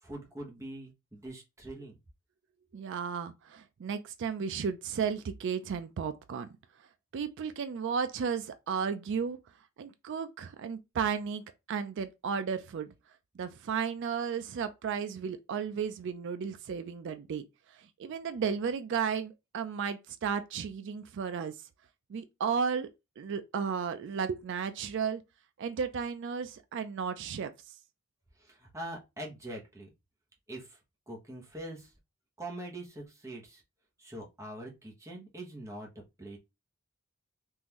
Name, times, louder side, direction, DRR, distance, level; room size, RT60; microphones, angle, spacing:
voice 1, 0.0-2.0 28.4-29.9 30.5-30.8 31.1-31.9 32.4-33.6 34.0-36.4, right 1 dB, 15° right, 1.0 m, -43 dB
voice 2, 2.7-6.5 7.1-9.4 9.8-12.9 13.4-21.5 22.1-22.9 23.2-25.2 25.6-27.7, right 6 dB, 60° right, 0.3 m, -34 dB
3.7 x 2.5 x 2.9 m
head